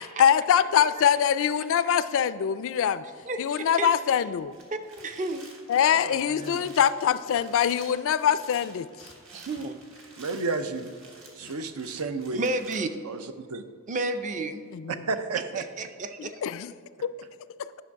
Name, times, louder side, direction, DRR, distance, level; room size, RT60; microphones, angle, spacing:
voice 1, 0.2-3.0 3.4-4.5 5.7-8.9 11.4-11.5 14.7-15.0 16.2-16.7 17.0-17.1, left 8 dB, 60° left, 15 dB, 0.3 m, -23 dB
voice 2, 3.3-3.9 4.7-5.4 9.3-9.7 12.3-12.9 13.9-14.6 15.6-16.3, right 2 dB, 35° right, 9 dB, 0.5 m, -31 dB
sound 1, 4.4-12.8, right 3 dB, 65° right, 1.5 m, -51 dB
voice 3, 5.9-6.7 10.2-10.9 11.3-12.4 13.0-13.6 14.9-15.7, right 4 dB, 80° right, 10 dB, 0.6 m, -32 dB
9.9 x 6.2 x 4.6 m, 2.1 s
head